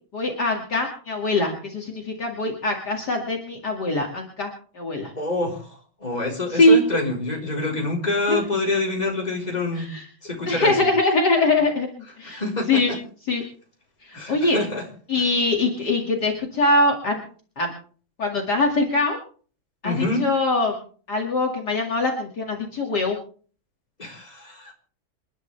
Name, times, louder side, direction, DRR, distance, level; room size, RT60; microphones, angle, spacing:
voice 1, 0.1-4.5 4.7-5.1 6.5-6.8 8.3-8.4 9.7-10.1 10.5-11.9 12.2-12.4 12.7-12.9 13.3-13.4 14.0-14.6 15.1-17.2 17.6-17.7 18.2-19.2 19.8-20.8 21.1-23.2, left 2 dB, 50° left, 0 dB, 2.8 m, -22 dB
voice 2, 5.2-5.7 6.0-9.9 10.2-10.8 12.2-13.0 14.1-14.9 15.2-15.3 19.8-20.2 24.0-24.7, left 2 dB, 20° left, -1 dB, 4.4 m, -26 dB
28.5 x 11.0 x 3.4 m, 0.43 s
omnidirectional pair, 2.3 m